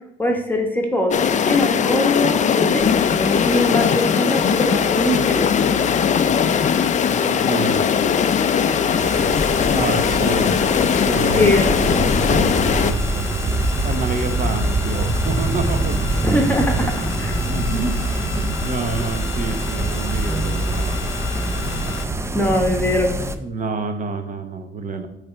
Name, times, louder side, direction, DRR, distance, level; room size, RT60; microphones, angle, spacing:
voice 1, 0.2-5.8 11.4-11.7 16.2-17.4 22.3-23.1, left 1 dB, 10° left, 2 dB, 1.1 m, -22 dB
sound 1, 1.1-12.9, left 7 dB, 40° left, 0.4 m, -19 dB
sound 2, 2.8-22.0, left 7 dB, 70° left, 0.7 m, -32 dB
voice 2, 7.2-7.9 9.7-12.6 12.8-16.2 17.5-21.0 23.4-25.1, right 3 dB, 40° right, 7 dB, 1.0 m, -28 dB
sound 3, 9.0-23.4, right 2 dB, 15° right, 0.5 m, -24 dB
8.6 x 3.3 x 4.4 m, 0.84 s
cardioid pair, 90°, 20 cm